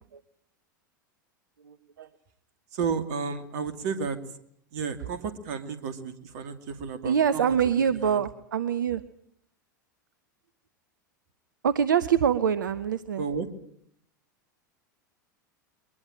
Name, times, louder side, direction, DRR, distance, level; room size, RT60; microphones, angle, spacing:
voice 1, 1.6-2.1 7.0-9.0 11.6-13.2, right 8 dB, 70° right, 15 dB, 1.0 m, -25 dB
voice 2, 2.7-4.2 4.7-7.5 8.0-8.2 13.2-13.5, right 5 dB, 55° right, 10 dB, 2.6 m, -32 dB
23.0 x 20.5 x 8.9 m, 0.69 s
figure-of-eight pair, 85°, 11 cm